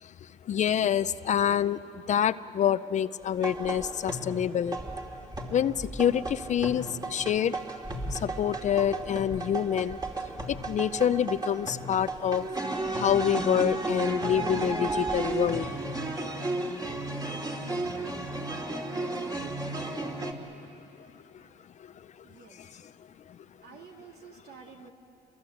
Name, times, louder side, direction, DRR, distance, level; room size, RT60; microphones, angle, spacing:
voice 1, 0.0-4.8 5.5-7.6 8.1-10.0 10.5-12.5 13.0-15.7 21.3-21.4 22.5-22.9, left 9 dB, 45° left, 14 dB, 0.5 m, -27 dB
sound 1, 3.4-20.3, right 2 dB, 25° right, 2.6 m, -34 dB
voice 2, 22.2-22.6 23.6-24.9, right 6 dB, 70° right, 1 dB, 3.3 m, -50 dB
29.0 x 23.0 x 8.5 m, 2.9 s
cardioid pair, 110°, 17 cm